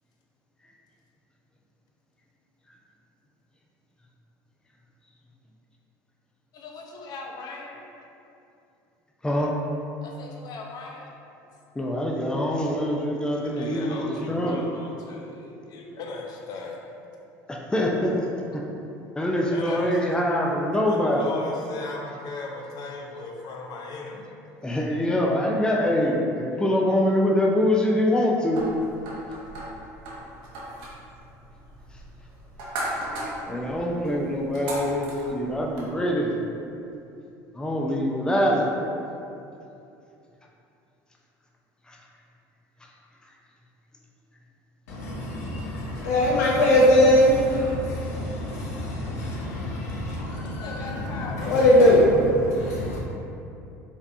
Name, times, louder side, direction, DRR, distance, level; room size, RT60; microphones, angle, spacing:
voice 1, 6.5-7.8 10.0-11.1 13.4-16.8 18.3-18.5 19.5-24.4 29.4-29.5 50.4-52.0, left 3 dB, 55° left, 0.7 m, -37 dB
voice 2, 11.8-14.0 14.3-14.6 17.5-18.1 18.5-18.6 19.1-21.2 24.6-28.6 33.5-36.3 37.5-38.7 41.9-42.0, left 1 dB, 10° left, 0.6 m, -24 dB
sound 1, 28.6-35.9, right 1 dB, 70° right, 1.0 m, -37 dB
voice 3, 44.9-53.0, left 1 dB, 90° left, 0.9 m, -21 dB
5.0 x 3.3 x 2.6 m
supercardioid pair, 85°, 8 cm